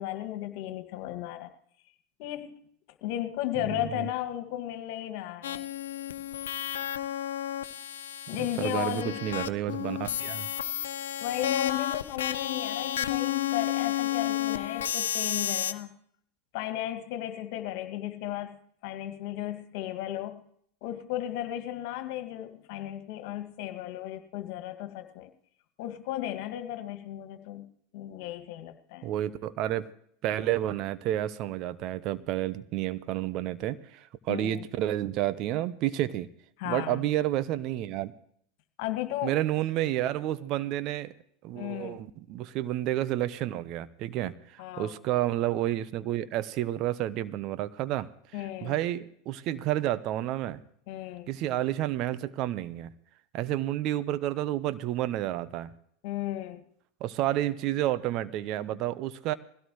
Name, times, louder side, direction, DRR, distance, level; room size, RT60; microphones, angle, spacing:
voice 1, 0.0-1.5 2.2-2.6 3.0-5.7 8.3-9.2 11.2-15.9 16.5-18.6 18.8-20.4 20.8-25.3 25.8-27.7 27.9-29.1 34.3-34.6 36.6-37.0 38.8-39.4 41.5-42.0 44.6-44.9 48.3-48.7 50.9-51.3 56.0-56.6, left 13 dB, 60° left, 2.1 m, -35 dB
voice 2, 3.7-4.1 8.6-10.5 29.0-29.9 30.2-36.3 36.6-38.1 39.2-41.1 41.4-50.6 51.3-52.9 53.3-55.7 57.0-59.3, right 13 dB, 50° right, 0.9 m, -30 dB
sound 1, 5.4-15.7, left 11 dB, 75° left, 0.8 m, -32 dB
21.5 x 16.5 x 3.2 m
hypercardioid pair, 90°, 0 cm